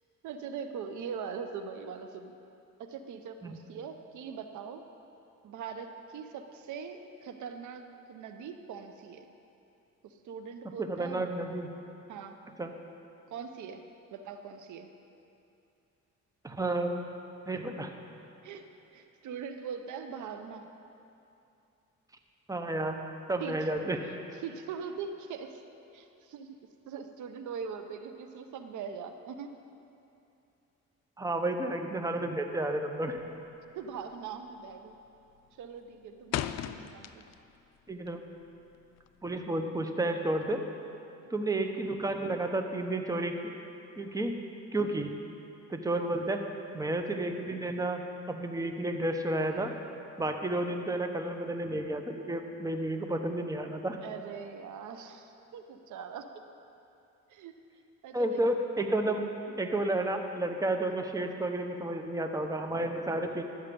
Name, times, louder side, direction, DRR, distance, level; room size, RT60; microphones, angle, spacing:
voice 1, 0.2-2.4 2.8-4.8 5.4-7.8 8.1-9.3 10.0-11.2 12.1-12.4 13.3-13.8 14.1-14.9 18.4-18.7 18.9-20.7 23.4-23.6 24.0-25.6 25.9-26.6 26.9-29.5 33.7-35.0 35.6-37.2 54.0-56.3 57.3-57.5 58.0-58.4, right 6 dB, 75° right, 7 dB, 0.7 m, -41 dB
voice 2, 10.9-11.7 12.6-12.7 16.4-17.0 17.5-17.9 22.5-23.0 23.3-24.2 31.2-33.2 37.9-38.2 39.2-40.6 41.3-43.4 44.0-44.4 44.7-45.1 45.7-46.4 46.7-49.7 50.2-54.0 58.1-59.2 59.6-63.4, right 1 dB, 10° right, 5 dB, 0.8 m, -31 dB
sound 1, 33.1-33.5 33.8-34.1 34.5-34.9 35.2-37.6 37.9-39.4, left 11 dB, 60° left, 0.4 m, -37 dB
12.0 x 8.1 x 5.2 m, 2.7 s
cardioid pair, 90°, 30 cm